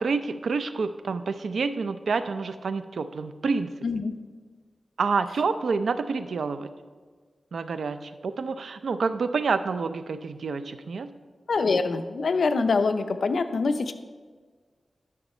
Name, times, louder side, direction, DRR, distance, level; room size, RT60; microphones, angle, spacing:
voice 1, 0.0-3.7 5.0-6.7 7.5-11.1, right 4 dB, 85° right, 11 dB, 0.5 m, -28 dB
voice 2, 11.5-13.9, left 4 dB, 75° left, 9 dB, 0.6 m, -24 dB
11.0 x 6.5 x 4.3 m, 1.5 s
wide cardioid pair, 90°, 0 cm